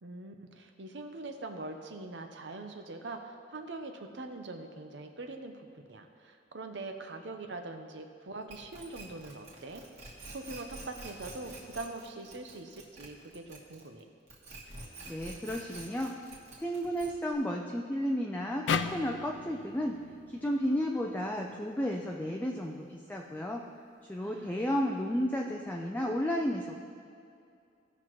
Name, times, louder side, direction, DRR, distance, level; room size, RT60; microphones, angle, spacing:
voice 1, 0.0-9.8 10.3-14.0 24.2-24.6, right 2 dB, 70° right, 5 dB, 0.8 m, -43 dB
sound 1, 8.5-14.0 14.3-17.3, right 2 dB, 40° right, 1.8 m, -47 dB
voice 2, 15.1-16.1 16.6-20.0 20.3-23.6 24.1-26.8, equal, 10° left, 0 dB, 0.5 m, -32 dB
sound 2, 18.7-21.9, left 6 dB, 80° left, 0.4 m, -36 dB
16.0 x 5.9 x 3.1 m, 2.5 s
head